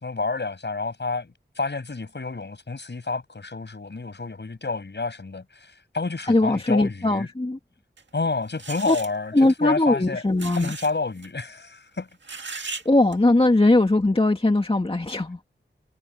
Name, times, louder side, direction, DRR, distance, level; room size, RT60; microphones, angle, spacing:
voice 1, 0.0-7.3 8.1-9.3 9.6-10.2 10.5-12.1, left 3 dB, 65° left, 7.8 m, -29 dB
voice 2, 6.3-7.6 8.9-9.0 9.3-10.7 12.9-15.4, left 2 dB, 30° left, 2.1 m, -20 dB
sound 1, 8.0-8.1 8.6-9.1 10.4-10.9 11.2-11.3 12.2-12.9 13.1-13.2, right 3 dB, 70° right, 1.9 m, -36 dB
wide cardioid pair, 65°, 20 cm